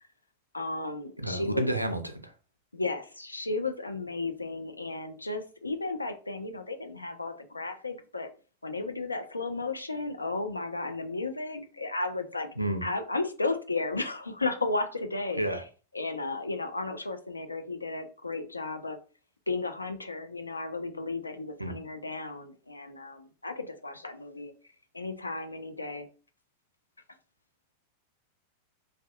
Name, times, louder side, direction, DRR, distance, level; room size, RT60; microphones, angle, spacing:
voice 1, 0.5-1.7 2.7-8.3 8.6-12.5 12.8-15.6 15.9-19.0 19.5-24.5 24.9-26.1, left 3 dB, 80° left, 0.3 m, -34 dB
voice 2, 1.2-2.3 12.6-12.8 15.4-15.6 21.6-21.8, right 1 dB, 90° right, 0.3 m, -30 dB
2.6 x 2.1 x 2.3 m
figure-of-eight pair, 90°, 0 cm